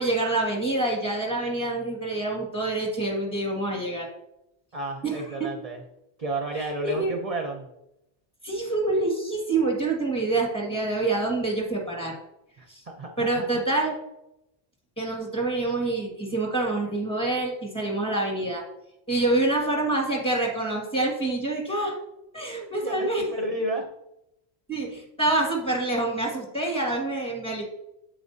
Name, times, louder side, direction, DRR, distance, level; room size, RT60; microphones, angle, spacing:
voice 1, 0.0-4.1 5.0-5.2 6.8-7.2 8.4-12.2 12.7-12.8 13.2-13.9 15.0-18.6 19.1-22.0 22.3-23.2 24.7-27.6, right 2 dB, 5° left, -1 dB, 1.8 m, -26 dB
voice 2, 4.7-5.8 6.2-7.7 12.6-13.6 22.8-23.9, right 1 dB, 40° right, 3 dB, 0.7 m, -32 dB
8.4 x 7.5 x 2.7 m, 0.87 s
omnidirectional pair, 1.1 m